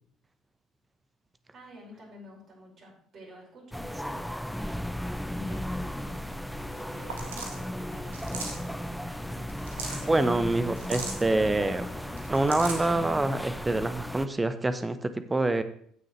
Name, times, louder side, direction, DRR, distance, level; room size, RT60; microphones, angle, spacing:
voice 1, 1.5-6.5 6.9-8.7 9.9-10.4, equal, 45° right, -4 dB, 5.2 m, -50 dB
sound 1, 3.7-14.3, equal, ahead, 0.4 m, -36 dB
sound 2, 6.0-13.1, left 5 dB, 70° left, 1.1 m, -50 dB
sound 3, 7.1-7.6 8.1-8.7 9.5-10.0 10.8-11.2 12.2-12.9, right 4 dB, 75° right, 1.5 m, -36 dB
voice 2, 10.1-15.6, right 2 dB, 15° right, 11 dB, 0.9 m, -26 dB
16.0 x 6.4 x 3.2 m, 0.62 s
figure-of-eight pair, 55°, 0 cm